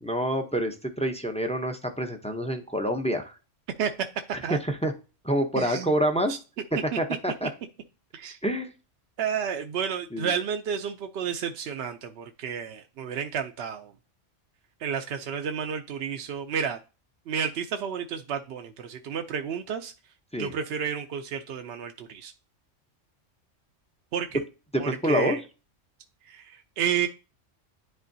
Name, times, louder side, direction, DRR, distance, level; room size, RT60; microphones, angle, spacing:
voice 1, 0.0-3.3 4.5-4.9 5.2-6.3 7.0-7.5 8.4-8.7 10.1-10.3 20.3-20.5 24.7-25.4, equal, 10° left, 5 dB, 0.4 m, -27 dB
voice 2, 5.5-5.9 6.3-6.4 6.7-6.8 8.1-8.4 9.2-13.9 14.8-16.8 17.3-19.9 20.3-22.3 24.1-24.4 24.8-25.4 26.2-27.1, right 7 dB, 65° right, 5 dB, 0.8 m, -31 dB
10.5 x 3.7 x 2.7 m, 0.32 s
omnidirectional pair, 1.3 m